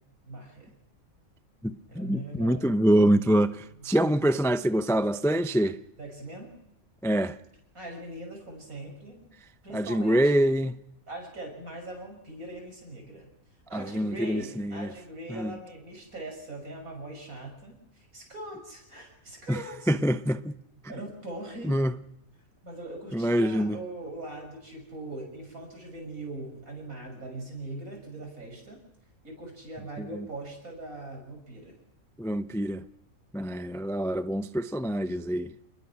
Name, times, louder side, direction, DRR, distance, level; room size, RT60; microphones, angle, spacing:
voice 1, 0.3-0.7 1.9-2.7 3.8-3.9 6.0-6.5 7.7-9.2 9.6-10.2 11.1-13.3 13.7-19.9 20.9-21.8 22.6-28.8 29.2-31.8, right 2 dB, 75° right, 7.1 m, -41 dB
voice 2, 1.6-5.8 7.0-7.3 9.7-10.8 13.7-14.9 15.3-15.5 19.5-19.6 19.9-20.5 21.6-21.9 23.1-23.8 32.2-32.8 33.3-35.5, right 1 dB, 5° left, 0.3 m, -25 dB
28.5 x 21.0 x 6.0 m
omnidirectional pair, 1.5 m